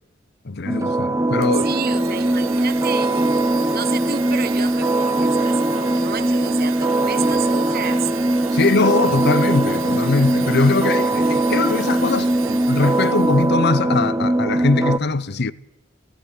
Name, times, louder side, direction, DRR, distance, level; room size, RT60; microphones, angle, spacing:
voice 1, 0.4-1.7 8.5-15.5, left 3 dB, 55° left, 0.8 m, -21 dB
sound 1, 0.7-15.0, right 1 dB, 15° right, 0.9 m, -20 dB
Domestic sounds home sounds, 1.4-13.5, right 10 dB, 85° right, 1.4 m, -36 dB
voice 2, 1.6-3.4 3.7-8.1 10.5-10.7, right 6 dB, 50° right, 1.1 m, -31 dB
19.0 x 15.0 x 9.8 m
head